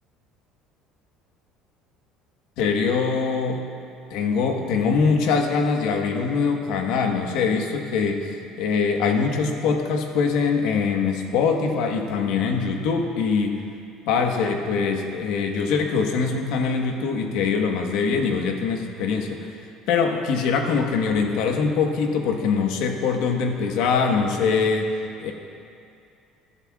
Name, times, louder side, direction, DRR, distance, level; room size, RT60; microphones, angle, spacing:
voice 1, 2.6-3.6 4.1-13.6 14.1-19.6 19.9-24.9 25.2-25.3, left 5 dB, 70° left, 3 dB, 1.2 m, -23 dB
23.0 x 11.0 x 2.4 m, 2.5 s
cardioid pair, 160°, 0 cm